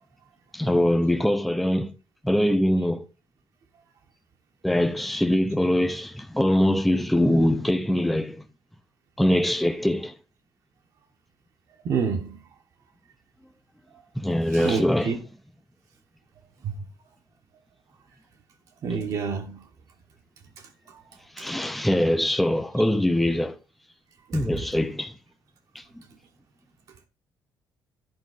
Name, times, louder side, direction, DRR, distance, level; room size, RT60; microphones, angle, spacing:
voice 1, 0.5-1.9 2.2-3.0 4.6-8.4 9.2-10.1 14.2-15.2 21.4-23.6 24.3-25.1 25.8-25.9, left 1 dB, ahead, 0.4 m, -23 dB
voice 2, 11.8-12.4 14.5-15.2 16.6-16.7 18.8-19.6 24.3-24.6, right 6 dB, 50° right, 0.9 m, -28 dB
10.5 x 5.2 x 3.9 m
cardioid pair, 180°, 7 cm